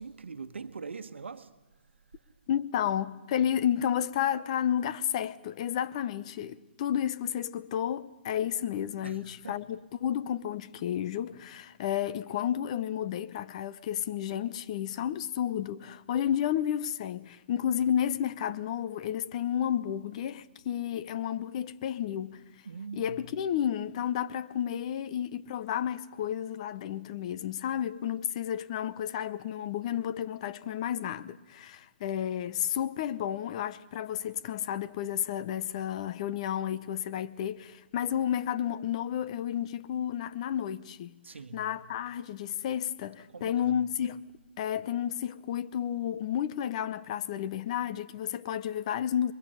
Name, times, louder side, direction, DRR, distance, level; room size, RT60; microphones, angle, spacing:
voice 1, 0.0-1.6 9.0-9.7 22.6-23.5 41.2-41.9 43.2-43.9, right 5 dB, 90° right, 1.2 m, -43 dB
voice 2, 2.5-22.4 23.0-41.1 41.5-44.2 44.6-49.3, left 10 dB, 35° left, 0.7 m, -31 dB
28.0 x 22.0 x 5.6 m
hypercardioid pair, 160°, 6 cm